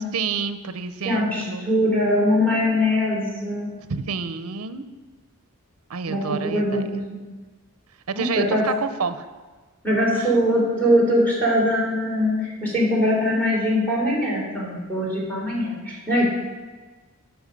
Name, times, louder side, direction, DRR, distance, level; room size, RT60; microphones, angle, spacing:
voice 1, 0.0-1.7 3.9-4.9 5.9-6.9 8.1-9.3 10.2-10.3, right 5 dB, 70° right, 11 dB, 0.6 m, -29 dB
voice 2, 1.1-3.7 6.1-7.0 8.1-8.6 9.8-16.3, equal, 5° left, -5 dB, 3.5 m, -22 dB
12.5 x 6.3 x 5.3 m, 1.3 s
head